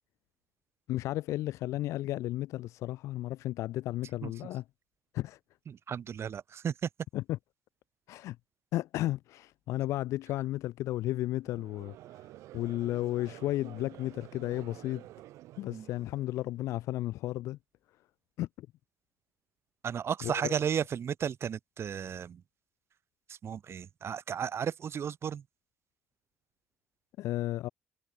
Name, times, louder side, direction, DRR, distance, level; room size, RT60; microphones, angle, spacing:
voice 1, 0.9-4.6 5.1-5.4 7.1-7.4 8.1-8.4 8.7-11.9 12.5-15.0 15.6-17.6 18.4-18.7 20.2-20.5 27.2-27.7, left 15 dB, 80° left, 1.7 m, -33 dB
voice 2, 5.7-6.9 15.7-15.9 19.8-22.4 23.3-25.4, right 8 dB, 55° right, 3.3 m, -34 dB
Conversation / Crowd, 11.4-16.7, right 15 dB, 85° right, 7.7 m, -51 dB
supercardioid pair, 65°, 5 cm